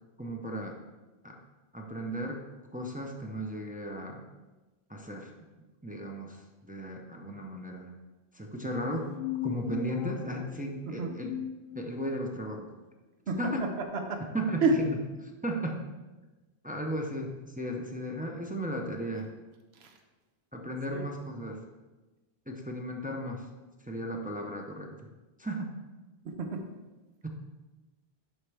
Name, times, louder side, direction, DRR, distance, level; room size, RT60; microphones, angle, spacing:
voice 1, 0.2-0.8 1.2-1.4 1.7-2.5 2.7-4.2 4.9-5.3 5.8-7.9 8.3-9.1 9.4-11.3 11.7-12.7 13.4-13.6 14.3-14.8 15.2-15.8 16.6-17.3 17.6-19.3 20.5-21.6 22.5-23.5 23.8-25.1 25.4-25.7 27.2-27.3, equal, 10° right, 1 dB, 0.5 m, -35 dB
sound 1, 8.9-12.3, left 10 dB, 80° left, 0.9 m, -39 dB
voice 2, 26.2-26.6, right 3 dB, 85° right, 4 dB, 1.1 m, -29 dB
11.0 x 4.4 x 3.4 m, 1.2 s
omnidirectional pair, 1.0 m